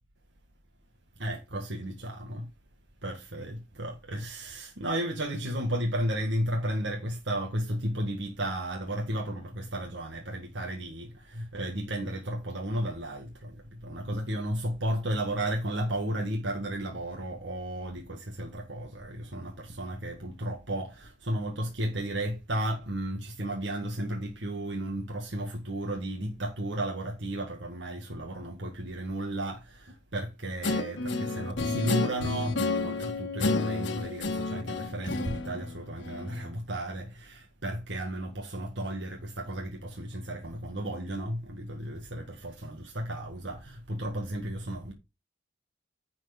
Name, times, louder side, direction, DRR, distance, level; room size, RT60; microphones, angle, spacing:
voice 1, 1.2-2.5 3.0-44.9, right 1 dB, 75° right, 1.8 m, -34 dB
Guitar, 30.6-36.4, left 3 dB, 80° left, 1.3 m, -31 dB
10.5 x 4.6 x 5.2 m
head